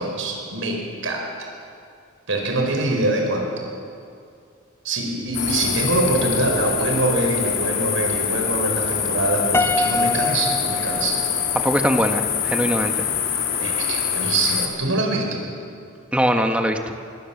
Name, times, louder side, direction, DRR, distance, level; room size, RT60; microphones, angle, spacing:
voice 1, 0.0-1.5 2.3-3.7 4.8-11.2 13.6-15.5, right 2 dB, 80° right, 1 dB, 5.1 m, -24 dB
sound 1, 5.3-14.7, left 8 dB, 70° left, 3.1 m, -25 dB
Piano, 9.5-11.8, left 2 dB, 10° left, 0.8 m, -25 dB
voice 2, 11.5-13.0 16.1-16.9, equal, 5° right, 5 dB, 1.5 m, -21 dB
26.0 x 21.5 x 7.3 m, 2.3 s
head